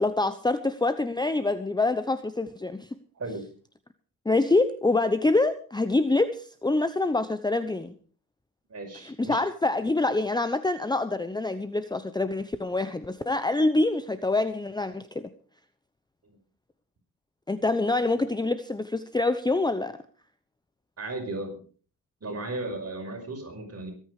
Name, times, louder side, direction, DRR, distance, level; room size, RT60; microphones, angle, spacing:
voice 1, 0.0-2.9 4.2-7.9 9.0-15.3 17.5-20.0, left 2 dB, 10° left, 11 dB, 0.9 m, -26 dB
voice 2, 3.1-3.5 8.7-9.4 16.2-16.4 21.0-21.6 22.2-23.9, right 2 dB, 40° right, 3 dB, 5.5 m, -35 dB
22.5 x 9.2 x 4.9 m, 0.42 s
cardioid pair, 80°, 38 cm